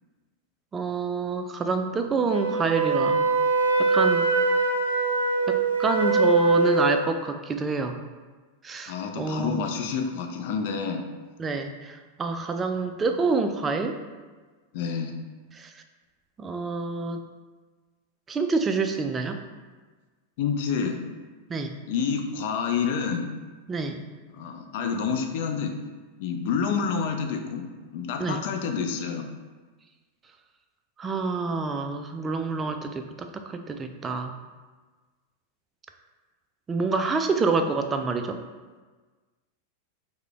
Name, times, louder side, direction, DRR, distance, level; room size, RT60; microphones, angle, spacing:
voice 1, 0.7-3.2 3.8-4.3 5.5-8.0 8.6-9.6 11.4-14.0 15.5-15.7 16.4-17.3 18.3-19.4 21.5-21.8 23.7-24.1 28.2-28.4 31.0-34.3 36.7-38.4, right 4 dB, 20° right, 6 dB, 0.3 m, -27 dB
Wind instrument woodwind instrument, 2.3-7.0, right 3 dB, 70° right, 0.5 m, -22 dB
voice 2, 8.9-11.0 14.7-15.1 20.4-21.0 21.9-23.3 24.3-25.7 26.2-29.3, left 6 dB, 50° left, 5 dB, 0.4 m, -28 dB
4.8 x 2.2 x 3.4 m, 1.4 s
figure-of-eight pair, 90°, 0 cm